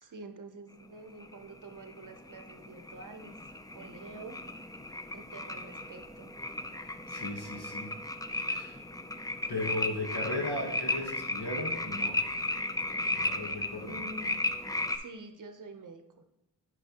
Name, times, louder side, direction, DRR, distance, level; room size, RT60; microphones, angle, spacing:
voice 1, 0.0-3.3 3.7-4.4 5.1-6.3 13.8-14.3 14.9-16.0, right 2 dB, 50° right, 7 dB, 0.7 m, -47 dB
sound 1, 1.2-15.0, left 2 dB, 10° left, 0.3 m, -35 dB
voice 2, 7.1-7.9 8.5-8.8 9.5-12.2 13.1-13.9, left 2 dB, 70° left, 0 dB, 1.3 m, -36 dB
9.8 x 5.4 x 2.9 m, 0.89 s
wide cardioid pair, 105°, 40 cm